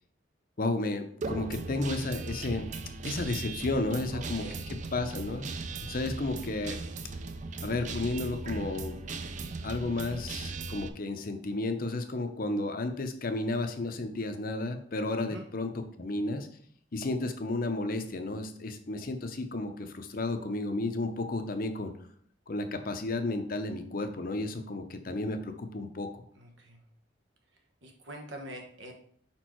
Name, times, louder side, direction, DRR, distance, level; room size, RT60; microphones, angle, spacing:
voice 1, 0.6-2.7 3.0-4.4 4.9-5.4 5.9-6.8 7.6-9.0 9.6-16.5 16.9-21.9 22.5-26.1, left 2 dB, 50° left, 7 dB, 0.6 m, -32 dB
Guitar, 1.2-10.9, right 3 dB, 40° right, 0.5 m, -38 dB
voice 2, 4.1-4.7 15.2-15.5 26.4-26.8 27.8-28.9, right 1 dB, 90° right, 2 dB, 1.2 m, -44 dB
5.1 x 4.4 x 4.5 m, 0.62 s
head